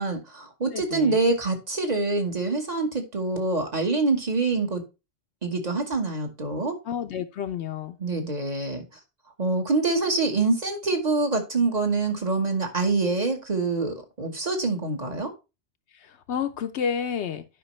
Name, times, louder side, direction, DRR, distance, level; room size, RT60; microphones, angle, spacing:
voice 1, 0.0-4.8 5.4-6.8 8.0-8.8 9.4-15.3, right 3 dB, 40° right, 4 dB, 1.4 m, -25 dB
voice 2, 0.7-1.2 6.8-8.0 15.9-17.4, left 7 dB, 75° left, 7 dB, 0.9 m, -30 dB
11.0 x 5.2 x 3.2 m, 0.28 s
omnidirectional pair, 1.1 m